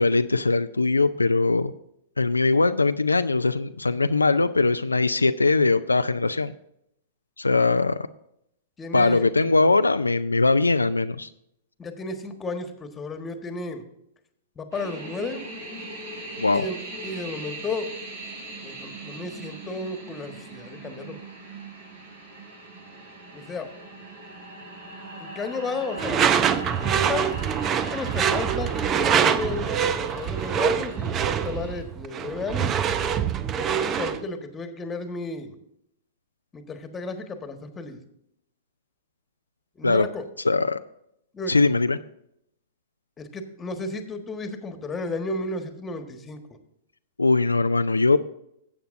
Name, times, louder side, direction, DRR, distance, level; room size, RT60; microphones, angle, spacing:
voice 1, 0.0-1.7 2.2-6.5 7.4-8.0 8.9-11.3 16.4-16.6 39.8-40.1 40.4-40.8 41.5-42.0 47.2-48.2, left 3 dB, 90° left, 10 dB, 0.4 m, -21 dB
voice 2, 8.8-9.3 11.8-13.8 14.5-15.4 16.5-17.9 18.6-21.2 23.3-23.7 25.2-26.2 26.5-27.4 27.8-32.7 33.5-35.6 36.5-38.0 39.8-40.2 41.3-41.6 43.2-46.4, left 3 dB, 20° left, 7 dB, 1.5 m, -33 dB
sound 1, 14.7-31.8, right 2 dB, 65° right, 4.4 m, -40 dB
Door / Screech, 26.0-34.2, right 8 dB, 30° right, 0.6 m, -24 dB
16.0 x 7.9 x 2.6 m, 0.76 s
figure-of-eight pair, 105°, 0 cm